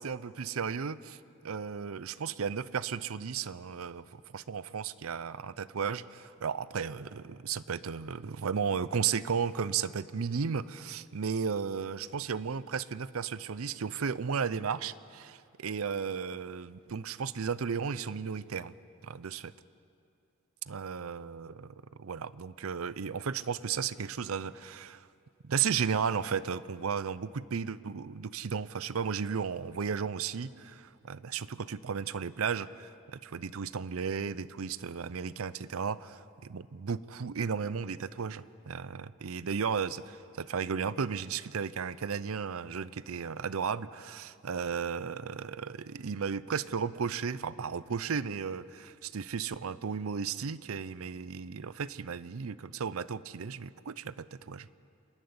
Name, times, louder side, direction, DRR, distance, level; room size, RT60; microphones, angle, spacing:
voice 1, 0.0-18.7 19.0-19.4 20.7-25.1 25.4-54.7, right 6 dB, 80° right, 18 dB, 0.6 m, -34 dB
27.0 x 10.5 x 9.5 m, 2.5 s
head